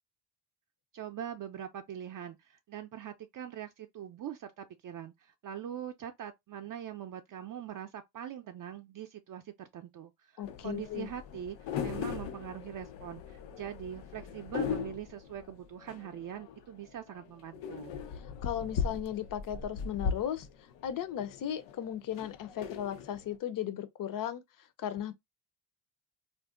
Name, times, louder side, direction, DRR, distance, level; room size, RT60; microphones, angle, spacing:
voice 1, 0.9-18.0, right 10 dB, 50° right, 0.5 m, -42 dB
sound 1, 10.4-23.4, left 7 dB, 90° left, 0.6 m, -39 dB
voice 2, 10.4-11.1 18.4-20.5 20.8-24.4 24.8-25.1, left 10 dB, 50° left, 0.6 m, -36 dB
2.6 x 2.1 x 3.6 m
cardioid pair, 75°, 43 cm